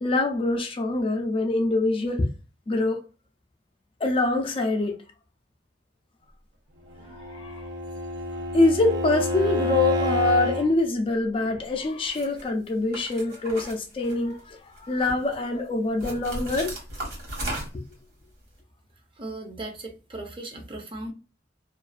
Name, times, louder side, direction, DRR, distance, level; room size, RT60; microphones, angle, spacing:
voice 1, 0.0-2.3 2.7-3.0 4.0-4.9 7.1-7.6 8.5-16.7, left 2 dB, 30° left, 0.4 m, -25 dB
Bowed string instrument, 7.0-10.7, left 1 dB, 80° right, 0.6 m, -28 dB
sound 1, 12.1-12.4 12.9-14.4 14.8-15.4 16.0-17.9, right 1 dB, 60° right, 1.2 m, -35 dB
voice 2, 19.2-21.1, right 2 dB, 30° right, 0.6 m, -37 dB
2.4 x 2.2 x 2.3 m
head